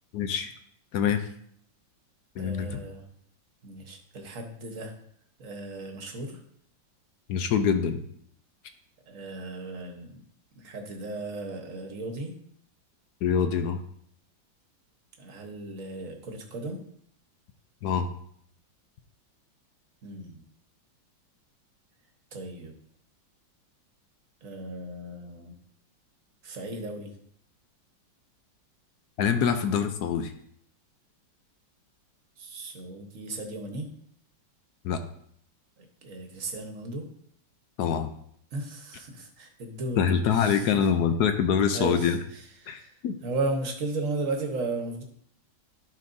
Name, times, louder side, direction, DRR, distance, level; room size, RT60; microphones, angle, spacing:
voice 1, 0.1-0.5 0.9-1.2 2.4-2.8 7.3-8.0 13.2-13.8 17.8-18.1 29.2-30.3 34.8-35.0 37.8-38.1 40.0-42.2 42.7-43.2, left 7 dB, 70° left, 8 dB, 1.0 m, -25 dB
voice 2, 2.4-3.1 3.6-4.9 5.4-6.4 9.1-10.2 10.5-12.3 15.2-16.8 20.0-20.4 22.3-22.8 24.4-25.5 26.4-27.2 29.4-29.5 32.4-33.9 35.8-37.1 38.5-40.9 41.7-45.0, right 2 dB, 50° right, 3 dB, 1.4 m, -35 dB
12.0 x 5.3 x 2.7 m, 0.66 s
omnidirectional pair, 2.1 m